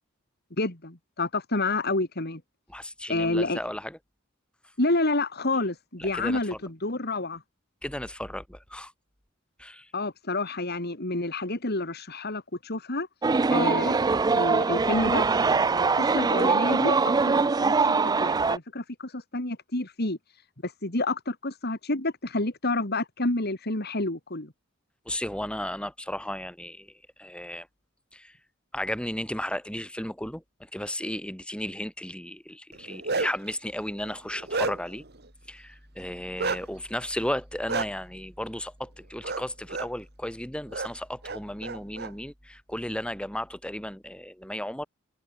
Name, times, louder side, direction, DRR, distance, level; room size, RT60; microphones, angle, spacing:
voice 1, 0.6-2.4 3.1-3.6 4.8-7.4 9.9-13.1 13.5-14.0 14.3-15.3 15.7-20.2 20.6-24.5, left 2 dB, 55° left, 3.5 m, -29 dB
voice 2, 2.7-4.0 6.0-6.6 7.8-8.9 9.6-9.9 25.1-26.9 27.2-27.7 28.1-28.4 28.7-35.0 35.5-44.8, left 1 dB, 5° left, 5.4 m, -34 dB
sound 1, 13.2-18.6, right 4 dB, 20° right, 0.4 m, -23 dB
Bark, 32.7-33.5 34.0-35.0 36.4-36.6 37.7-37.9 39.2-39.4 39.7-39.9 40.7-40.9 41.2-42.1, right 4 dB, 55° right, 2.9 m, -30 dB
head